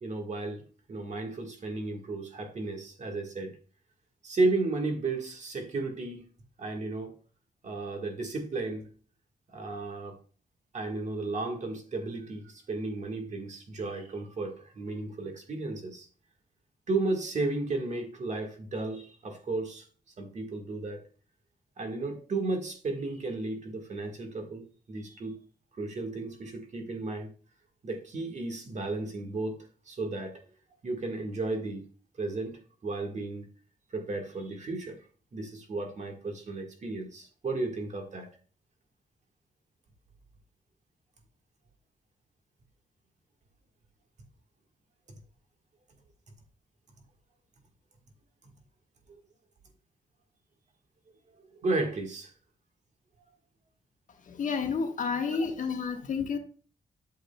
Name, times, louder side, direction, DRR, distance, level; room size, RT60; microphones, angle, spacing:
voice 1, 0.0-3.5 4.2-6.2 6.6-7.1 7.6-8.9 9.5-10.2 10.7-16.1 16.9-19.9 20.2-21.1 21.8-25.4 25.8-27.3 27.8-29.6 29.9-30.4 30.8-31.8 32.2-33.4 33.9-35.0 35.3-38.3 51.6-52.3 55.3-55.5, right 3 dB, 50° right, 1.5 m, -34 dB
voice 2, 54.3-56.4, left 5 dB, 60° left, 1.2 m, -30 dB
8.4 x 6.5 x 2.2 m
wide cardioid pair, 135°, 15 cm